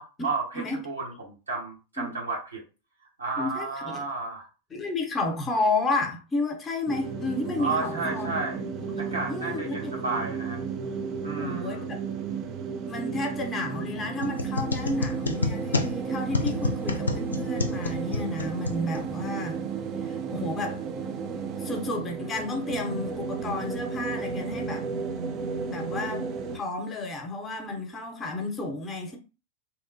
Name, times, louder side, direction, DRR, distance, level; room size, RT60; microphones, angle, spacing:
voice 1, 0.0-2.6 3.2-4.5 7.6-8.6 9.0-10.6 11.2-11.8, right 3 dB, 75° right, 1.2 m, -32 dB
voice 2, 3.4-4.0 4.7-8.3 8.8-9.9 11.4-12.0 12.9-19.6 20.0-20.8 21.6-24.9 25.6-26.3 26.5-29.2, left 2 dB, 20° left, 0.7 m, -31 dB
sound 1, 6.9-26.6, right 5 dB, 35° right, 0.3 m, -33 dB
sound 2, 14.2-19.3, left 3 dB, 75° left, 0.4 m, -30 dB
2.9 x 2.1 x 2.6 m
figure-of-eight pair, 90°, 0 cm